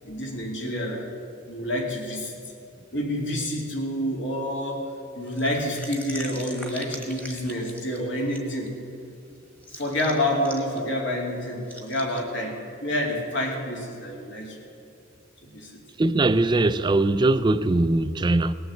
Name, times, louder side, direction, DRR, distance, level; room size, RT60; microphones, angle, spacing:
voice 1, 0.0-1.1 1.5-2.4 2.9-4.8 5.2-8.7 9.7-14.6 15.5-15.7, left 1 dB, 60° left, 2.5 m, -28 dB
sound 1, 5.2-8.4 8.7-8.8 9.6-10.8 11.1-11.2 11.7-12.2, equal, 5° left, 1.4 m, -42 dB
voice 2, 16.0-18.5, right 2 dB, 20° right, 0.3 m, -21 dB
18.5 x 7.0 x 7.7 m
head